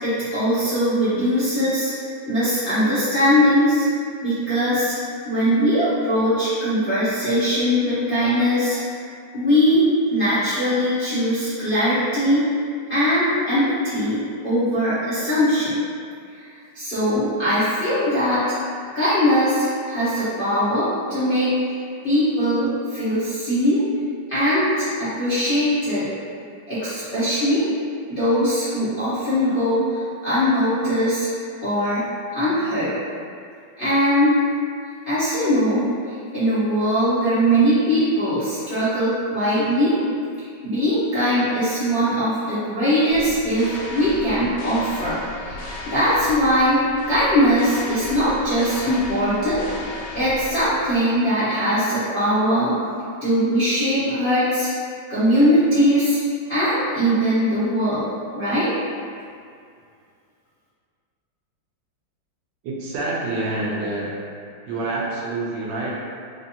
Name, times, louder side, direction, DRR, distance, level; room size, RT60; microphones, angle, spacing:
voice 1, 0.0-1.9 2.3-3.8 4.2-4.9 5.2-8.8 9.3-9.8 10.1-12.4 12.9-15.7 16.7-18.4 18.9-21.8 22.0-23.8 24.3-26.1 26.7-27.7 28.1-31.3 31.6-32.0 32.3-32.9 33.8-34.4 35.1-40.0 40.4-46.8 47.1-49.6 50.1-52.7 53.2-54.7 55.1-56.2 56.5-58.1 58.3-58.7, equal, 40° left, -15 dB, 0.8 m, -20 dB
sound 1, 43.1-51.0, left 2 dB, 80° left, 1.6 m, -36 dB
voice 2, 62.6-64.2 64.7-65.9, right 2 dB, 80° right, -5 dB, 1.4 m, -27 dB
4.1 x 2.5 x 2.8 m, 2.3 s
omnidirectional pair, 2.0 m